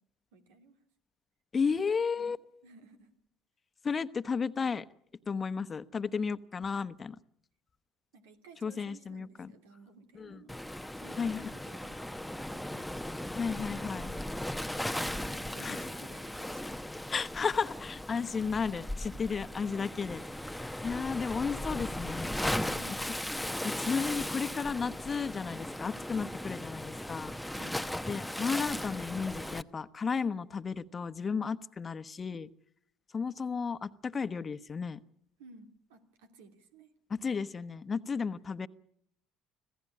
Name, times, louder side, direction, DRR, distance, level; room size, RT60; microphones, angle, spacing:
voice 1, 0.3-0.8 1.9-2.0 2.6-3.1 8.1-10.5 10.9-12.9 13.7-14.5 15.2-16.8 19.3-19.5 27.6-27.9 35.4-36.9, right 3 dB, 85° right, 6 dB, 3.0 m, -55 dB
voice 2, 1.5-2.4 3.8-4.8 5.3-7.2 8.6-9.5 10.1-10.4 11.2-11.5 13.3-14.1 15.6-15.8 17.1-20.2 20.8-22.3 23.6-27.3 28.1-32.5 33.1-35.0 37.1-38.7, left 5 dB, 35° left, 12 dB, 1.1 m, -33 dB
Waves surf, 10.5-29.6, left 1 dB, 5° left, 0.9 m, -37 dB
26.0 x 16.5 x 8.5 m, 0.69 s
hypercardioid pair, 70°, 0 cm